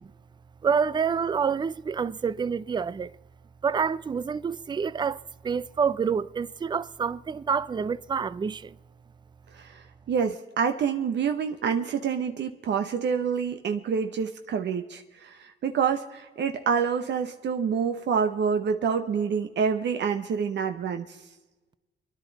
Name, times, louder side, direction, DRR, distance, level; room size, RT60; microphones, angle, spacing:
voice 1, 0.6-3.1 3.6-8.7, right 6 dB, 20° right, 0.4 m, -27 dB
voice 2, 9.5-21.2, right 6 dB, 60° right, 1.0 m, -27 dB
28.5 x 11.0 x 4.1 m
cardioid pair, 90°, 20 cm